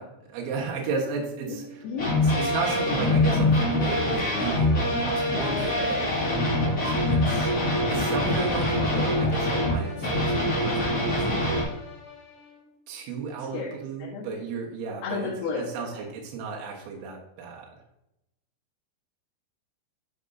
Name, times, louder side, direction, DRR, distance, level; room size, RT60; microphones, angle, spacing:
voice 1, 0.0-1.6 2.2-6.0 6.8-7.5 7.9-11.6 12.9-15.3 15.6-17.7, right 4 dB, 75° right, -2 dB, 3.6 m, -34 dB
voice 2, 1.5-2.3 5.8-5.9 13.5-14.3 15.0-16.0, left 4 dB, 90° left, -6 dB, 4.1 m, -34 dB
sound 1, 1.8-12.7, left 7 dB, 50° left, 2.0 m, -42 dB
sound 2, 2.0-11.6, left 1 dB, 25° left, 2.5 m, -24 dB
11.0 x 5.2 x 2.7 m, 0.88 s
omnidirectional pair, 5.7 m